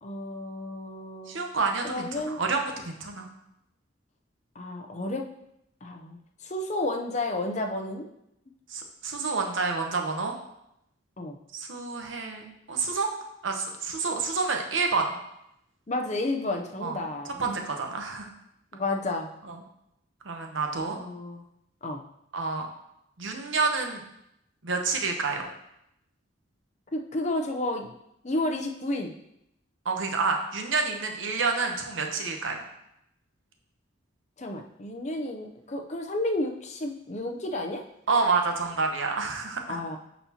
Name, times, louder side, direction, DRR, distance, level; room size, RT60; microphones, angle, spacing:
voice 1, 0.0-1.4 1.8-2.4 4.6-5.3 5.8-8.1 11.2-11.4 15.9-17.6 18.7-19.3 20.9-21.4 21.8-22.0 26.9-27.9 28.2-29.1 34.4-37.8 39.7-40.0, left 2 dB, 35° left, 3 dB, 0.6 m, -31 dB
voice 2, 1.3-3.3 8.7-10.3 11.5-13.1 13.4-15.2 16.8-17.0 17.4-18.3 19.5-19.6 20.2-21.0 22.3-22.7 23.2-24.0 24.6-25.5 29.8-32.6 38.1-39.8, right 4 dB, 75° right, 3 dB, 0.9 m, -28 dB
11.5 x 4.2 x 2.9 m, 0.81 s
head